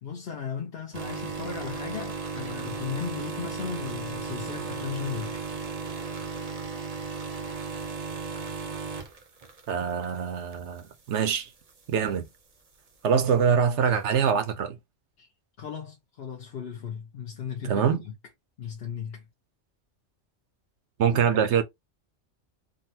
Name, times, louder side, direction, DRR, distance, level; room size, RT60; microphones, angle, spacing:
voice 1, 0.0-5.4 15.2-15.3 15.6-18.1 18.6-19.3, left 7 dB, 55° left, 0.9 m, -36 dB
sound 1, 0.9-10.1 10.5-10.8 11.7-11.8, right 5 dB, 40° right, 0.6 m, -35 dB
voice 2, 9.7-11.5 11.9-12.3 13.0-14.8 17.6-18.0 21.0-21.6, right 7 dB, 70° right, 0.9 m, -24 dB
3.8 x 2.2 x 2.7 m
omnidirectional pair, 1.3 m